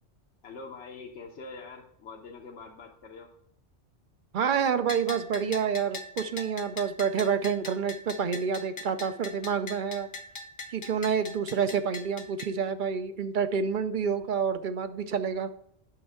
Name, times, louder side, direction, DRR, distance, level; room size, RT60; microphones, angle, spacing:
voice 1, 0.4-3.3, left 4 dB, 75° left, 1 dB, 1.1 m, -44 dB
voice 2, 4.3-10.1 10.7-15.5, right 6 dB, 55° right, 11 dB, 0.6 m, -28 dB
Bell, 4.9-12.5, left 3 dB, 50° left, 0.9 m, -42 dB
8.7 x 6.2 x 3.6 m, 0.73 s
omnidirectional pair, 1.2 m